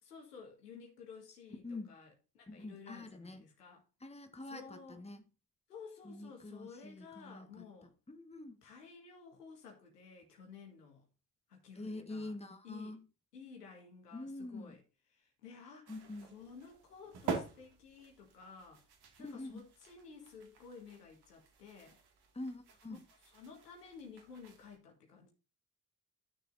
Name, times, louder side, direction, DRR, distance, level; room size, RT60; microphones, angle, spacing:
voice 1, 0.0-3.8 4.5-5.0 5.7-7.9 8.6-11.1 11.5-12.3 12.6-13.0 13.3-14.8 15.1-15.9 16.2-18.9 19.2-22.0 23.3-25.3, left 5 dB, 85° left, 1.9 m, -53 dB
voice 2, 2.5-3.4 4.0-5.2 6.0-7.6 8.1-8.6 11.7-13.0 14.1-14.7 15.9-16.3 19.2-19.6 22.3-23.0, left 2 dB, 15° left, 1.5 m, -45 dB
sound 1, 15.9-24.8, right 5 dB, 55° right, 2.3 m, -47 dB
13.0 x 6.6 x 2.7 m
figure-of-eight pair, 45°, 46 cm